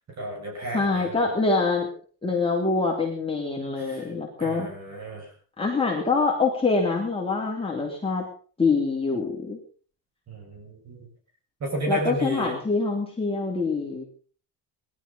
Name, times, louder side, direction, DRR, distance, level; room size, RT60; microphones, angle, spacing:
voice 1, 0.2-1.2 3.8-4.0 4.4-5.3 10.3-11.1 11.6-12.5, right 1 dB, 40° right, 0 dB, 6.5 m, -32 dB
voice 2, 0.7-1.9 2.2-4.7 5.6-8.3 8.6-9.6 11.9-14.0, left 4 dB, 15° left, -2 dB, 3.1 m, -25 dB
19.0 x 12.5 x 5.3 m, 0.43 s
cardioid pair, 135°, 41 cm